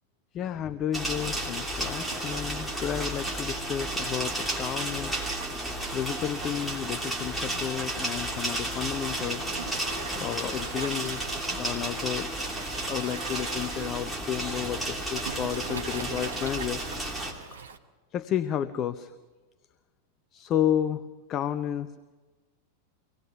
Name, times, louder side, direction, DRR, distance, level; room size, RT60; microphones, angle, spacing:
voice 1, 0.3-5.3 5.8-9.4 10.1-12.3 12.5-16.8 17.5-17.7 18.1-19.1 20.3-21.0 21.3-21.9, left 10 dB, 30° left, 12 dB, 0.6 m, -32 dB
sound 1, 0.9-17.3, right 1 dB, ahead, 3.0 m, -33 dB
Waves surf, 1.7-17.8, right 6 dB, 65° right, 0.9 m, -43 dB
24.5 x 18.0 x 5.8 m, 1.3 s
figure-of-eight pair, 90°, 0 cm